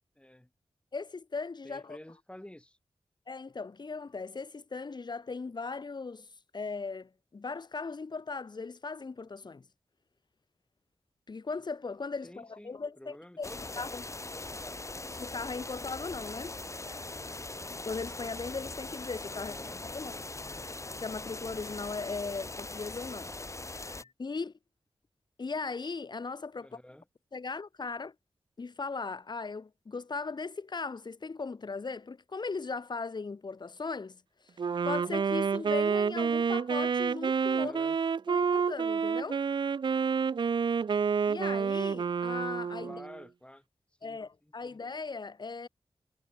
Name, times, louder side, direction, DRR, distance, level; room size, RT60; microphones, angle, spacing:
voice 1, 0.2-0.5 1.6-2.8 12.2-14.0 14.3-14.8 19.3-20.1 23.8-24.1 26.6-27.0 37.5-38.0 42.8-43.6 44.0-44.8, left 1 dB, 10° left, 5.0 m, -50 dB
voice 2, 0.9-2.0 3.3-6.3 6.5-9.7 11.3-13.5 13.8-14.0 15.2-16.6 17.8-20.1 20.9-23.7 24.2-24.5 25.4-26.8 27.3-28.1 28.6-34.2 34.8-37.8 38.3-39.4 41.3-43.0 44.0-45.7, left 4 dB, 45° left, 0.9 m, -38 dB
sound 1, 13.4-24.0, left 2 dB, 30° left, 1.5 m, -41 dB
sound 2, 16.8-17.2 19.2-19.7 20.3-20.9 21.5-22.1 23.7-24.1, left 6 dB, 85° left, 2.4 m, -59 dB
Wind instrument woodwind instrument, 34.6-43.2, right 6 dB, 50° right, 0.3 m, -29 dB
cardioid pair, 60°, 10 cm